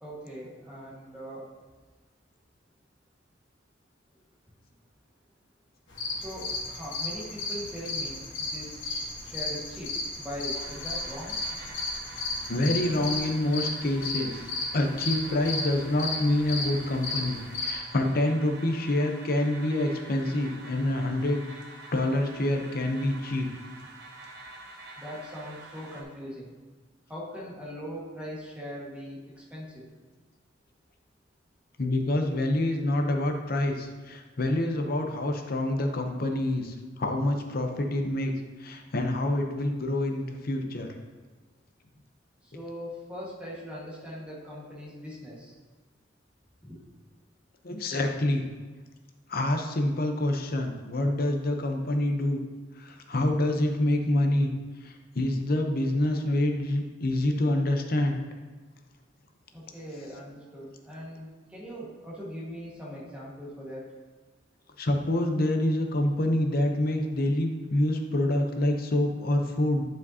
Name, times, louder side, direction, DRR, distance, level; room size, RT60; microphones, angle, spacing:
voice 1, 0.0-1.4 6.1-11.4 25.0-26.5 27.1-29.9 42.4-45.5 46.6-46.8 59.5-63.9, equal, 5° right, -6 dB, 1.5 m, -41 dB
sound 1, 5.9-17.7, left 3 dB, 80° left, 1.4 m, -34 dB
sound 2, 10.5-26.0, right 2 dB, 55° right, 1.0 m, -47 dB
voice 2, 12.5-21.4 21.9-23.5 31.8-38.3 38.6-40.9 47.6-48.5 49.3-52.4 52.8-54.5 54.8-58.2 64.8-69.8, left 1 dB, 50° left, 4 dB, 0.7 m, -27 dB
9.4 x 5.2 x 2.7 m, 1.3 s
head